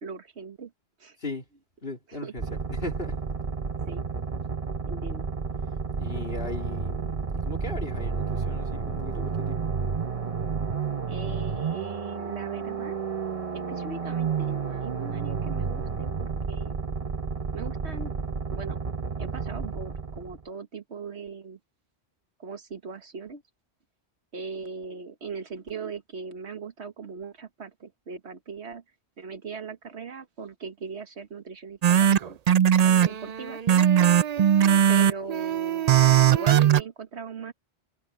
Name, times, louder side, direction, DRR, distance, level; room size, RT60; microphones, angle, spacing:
voice 1, 0.0-0.7 1.0-1.2 2.1-2.3 3.9-4.0 4.9-5.3 11.1-13.0 13.5-16.8 17.5-18.1 18.5-18.8 19.2-21.6 22.4-23.4 24.3-28.8 29.2-32.4 32.8-33.6 34.6-35.9 36.3-37.5, right 5 dB, 80° right, 1.7 m, -39 dB
voice 2, 1.8-2.4 2.7-3.2 5.9-9.6, left 2 dB, 60° left, 3.3 m, -37 dB
sound 1, 2.4-20.4, right 5 dB, 35° right, 1.0 m, -31 dB
sound 2, 31.8-36.8, right 9 dB, 55° right, 0.5 m, -19 dB
omnidirectional pair, 1.1 m